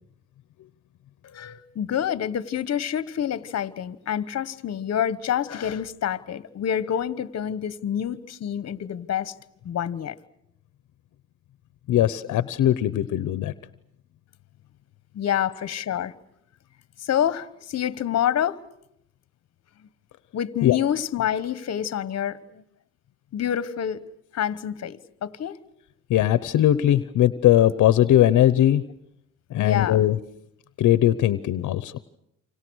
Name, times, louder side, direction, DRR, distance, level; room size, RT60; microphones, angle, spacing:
voice 1, 1.2-9.3 9.6-10.1 15.1-16.1 17.0-18.6 20.3-22.6 23.3-24.0 24.3-25.6 29.6-30.0, left 9 dB, 55° left, 16 dB, 1.3 m, -27 dB
voice 2, 11.9-13.5 20.6-20.8 26.1-28.8 29.5-30.2 30.8-31.9, left 12 dB, 75° left, 15 dB, 1.0 m, -19 dB
29.0 x 26.0 x 6.4 m, 0.78 s
cardioid pair, 90°, 30 cm